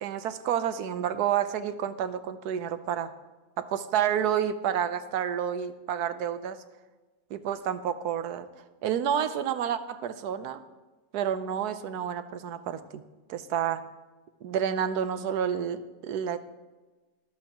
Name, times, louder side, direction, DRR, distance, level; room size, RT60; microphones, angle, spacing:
voice 1, 0.0-3.1 3.6-6.6 7.3-8.5 8.8-10.6 11.1-13.0 13.3-13.8 14.4-16.4, right 9 dB, 85° right, 12 dB, 1.3 m, -29 dB
23.5 x 7.8 x 2.9 m, 1.2 s
omnidirectional pair, 1.6 m